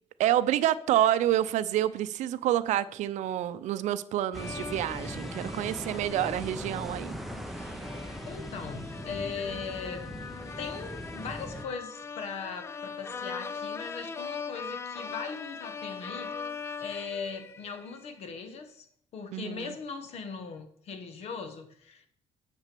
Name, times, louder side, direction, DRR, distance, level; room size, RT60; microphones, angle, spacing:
voice 1, 0.2-7.2 19.3-19.7, right 12 dB, 75° right, 0.5 m, -28 dB
sound 1, 4.3-18.0, left 5 dB, 20° left, 0.4 m, -41 dB
sound 2, 4.3-11.7, equal, ahead, 0.7 m, -40 dB
voice 2, 8.3-10.2 10.6-18.9 19.1-22.1, left 5 dB, 55° left, 1.1 m, -39 dB
7.5 x 6.0 x 6.8 m
cardioid pair, 155°, 13 cm